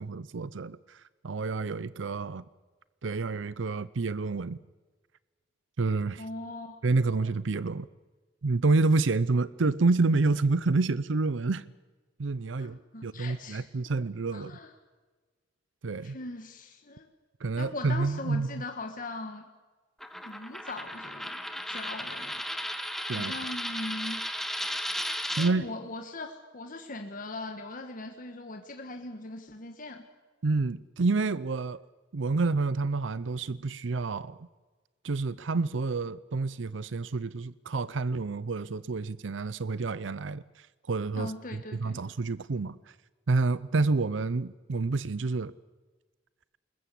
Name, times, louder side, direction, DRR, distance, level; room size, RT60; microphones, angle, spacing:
voice 1, 0.0-2.4 3.0-4.6 5.8-6.2 6.8-7.9 8.4-11.6 12.2-14.5 15.8-16.2 17.4-18.6 23.1-23.3 25.4-25.7 30.4-31.8 32.1-34.5 35.0-42.8 43.3-45.5, right 3 dB, 90° right, 0.6 m, -28 dB
voice 2, 6.2-6.8 12.6-13.7 14.3-14.7 16.0-17.1 17.6-19.4 20.2-22.4 23.1-24.2 25.4-30.0 41.1-42.0, left 2 dB, 45° left, 1.5 m, -40 dB
Coin (dropping), 20.0-25.5, equal, ahead, 1.4 m, -35 dB
21.5 x 20.5 x 8.3 m
head